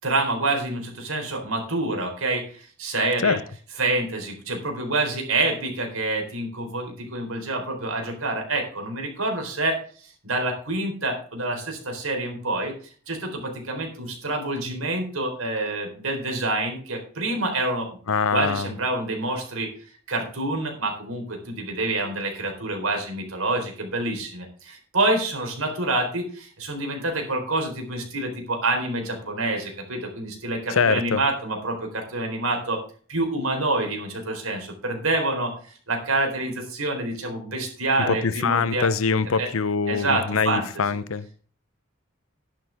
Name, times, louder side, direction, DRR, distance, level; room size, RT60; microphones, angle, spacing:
voice 1, 0.0-3.4 3.8-12.7 13.1-18.0 18.3-19.7 20.1-32.8 33.1-38.9 39.3-39.5 39.9-40.8, right 2 dB, 85° right, 4.1 m, -27 dB
voice 2, 18.1-18.7 30.7-31.2 38.1-41.3, left 5 dB, 80° left, 0.7 m, -23 dB
11.5 x 10.5 x 3.5 m
head